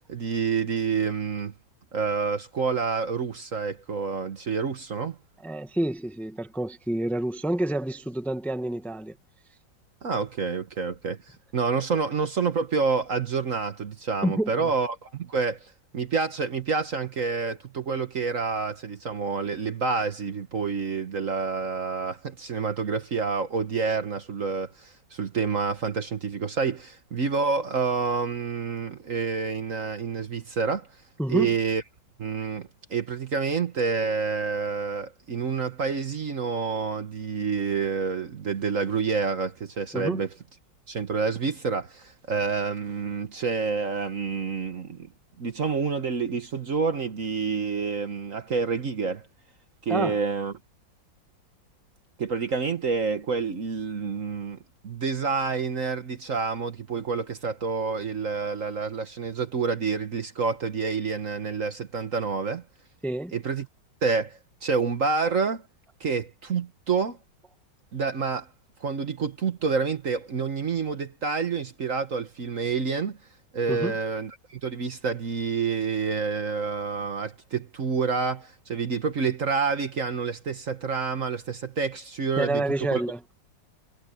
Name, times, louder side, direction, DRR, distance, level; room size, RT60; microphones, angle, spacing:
voice 1, 0.0-1.5 1.9-5.2 10.0-15.6 15.9-30.9 31.3-31.8 32.2-40.3 40.9-45.1 45.4-49.3 49.8-50.5 52.2-54.6 54.8-62.6 63.3-63.7 64.0-65.6 66.0-67.2 67.9-68.5 68.8-73.2 73.5-82.6 82.9-83.0, right 5 dB, 45° right, 1.5 m, -28 dB
voice 2, 5.4-9.1 14.2-14.7 31.2-31.5 39.9-40.2 49.9-50.2 63.0-63.3 73.7-74.0 82.4-83.2, right 1 dB, ahead, 1.2 m, -28 dB
omnidirectional pair, 2.0 m